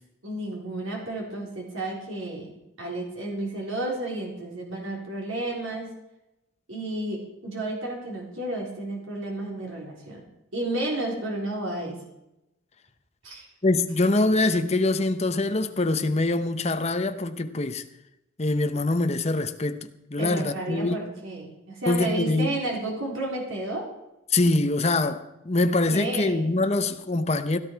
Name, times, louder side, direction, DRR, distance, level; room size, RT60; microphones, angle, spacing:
voice 1, 0.2-2.5 2.8-5.9 6.7-10.2 10.5-12.0 13.2-13.5 20.2-23.9 25.9-26.5, right 1 dB, 75° right, 3.9 m, -32 dB
voice 2, 13.6-17.8 18.4-21.0 21.9-22.5 24.3-27.6, left 2 dB, 30° left, 0.8 m, -24 dB
16.5 x 12.5 x 4.7 m
head